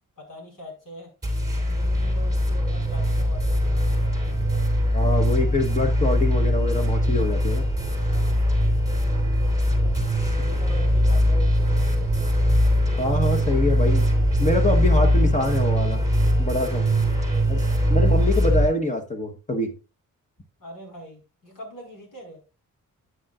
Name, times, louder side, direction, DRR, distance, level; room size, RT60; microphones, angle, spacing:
voice 1, 0.2-1.1 1.5-4.1 8.0-8.5 9.7-11.8 20.6-22.4, equal, 75° left, 0 dB, 4.8 m, -44 dB
sound 1, 1.2-18.7, equal, 10° right, 3.0 m, -21 dB
voice 2, 4.9-7.7 13.0-14.1 14.4-16.0 16.4-16.9 17.5-19.7, left 2 dB, 20° left, 5 dB, 1.1 m, -25 dB
9.4 x 9.0 x 2.4 m, 0.30 s
wide cardioid pair, 160°, 33 cm